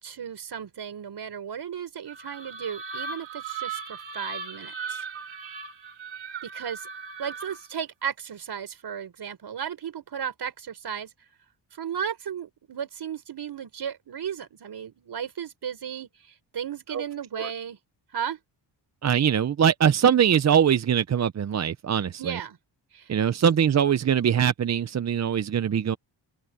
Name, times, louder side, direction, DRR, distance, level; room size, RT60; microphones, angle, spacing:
voice 1, 0.0-5.0 6.4-6.9 7.2-11.1 11.7-17.8 18.1-18.4 22.2-22.6 22.9-23.1, right 8 dB, 60° right, 5.2 m, -35 dB
sound 1, 2.1-7.8, right 5 dB, 80° right, 5.2 m, -37 dB
voice 2, 19.0-22.4 23.1-26.0, right 8 dB, 35° right, 0.6 m, -22 dB
wide cardioid pair, 125°, 44 cm